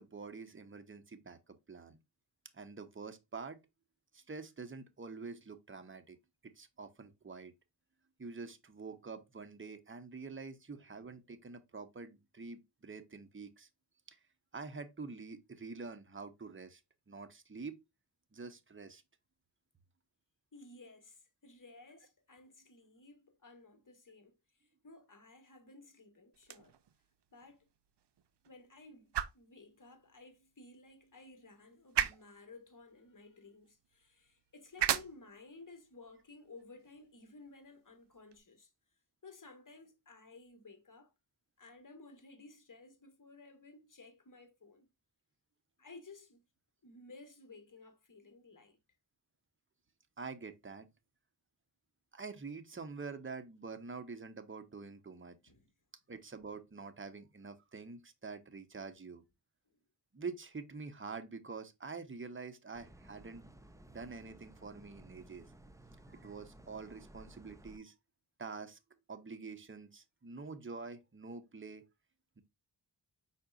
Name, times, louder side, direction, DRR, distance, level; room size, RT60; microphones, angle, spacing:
voice 1, 0.0-2.0 2.5-3.6 4.1-6.2 6.4-7.5 8.2-13.7 14.1-14.2 14.5-16.8 17.1-17.8 18.3-19.0 50.2-50.9 52.1-55.4 56.1-59.2 60.1-63.4 63.9-65.5 66.1-67.9 68.4-68.8 69.1-71.8 72.4-72.5, right 4 dB, 30° right, 0.9 m, -46 dB
voice 2, 20.5-26.7 27.3-27.6 28.5-38.7 39.2-41.1 41.6-44.9 45.8-46.4 46.8-48.8 55.4-55.7, left 3 dB, 45° left, 1.6 m, -56 dB
sound 1, 26.3-38.4, right 10 dB, 65° right, 0.6 m, -41 dB
sound 2, 62.7-67.8, right 1 dB, 5° right, 0.5 m, -57 dB
5.0 x 4.2 x 2.3 m
wide cardioid pair, 65°, 44 cm